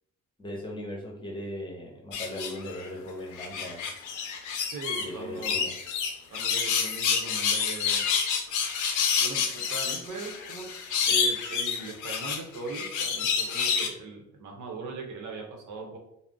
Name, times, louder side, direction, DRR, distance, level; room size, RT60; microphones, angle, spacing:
voice 1, 0.4-3.9 5.0-5.7, left 1 dB, 15° left, -2 dB, 0.8 m, -38 dB
sound 1, 2.1-2.9 3.3-5.1 5.4-13.9, left 6 dB, 80° left, 0.5 m, -28 dB
voice 2, 4.7-5.7 6.3-8.0 9.2-10.7 11.0-16.0, right 3 dB, 85° right, 1 dB, 0.8 m, -39 dB
2.4 x 2.1 x 3.6 m, 0.79 s
cardioid pair, 90°, 30 cm